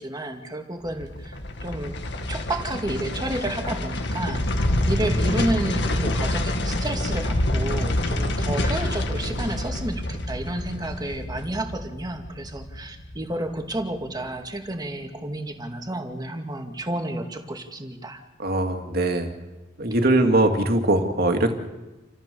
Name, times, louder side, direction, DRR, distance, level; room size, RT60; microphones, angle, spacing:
voice 1, 0.0-2.0 2.3-18.2, right 1 dB, 20° right, 4 dB, 2.2 m, -31 dB
sound 1, 0.8-14.0 14.3-14.4, left 1 dB, 65° left, 1.9 m, -27 dB
voice 2, 18.4-19.3 19.8-21.5, right 1 dB, 55° right, 5 dB, 2.4 m, -21 dB
29.0 x 14.5 x 7.0 m, 1.1 s
head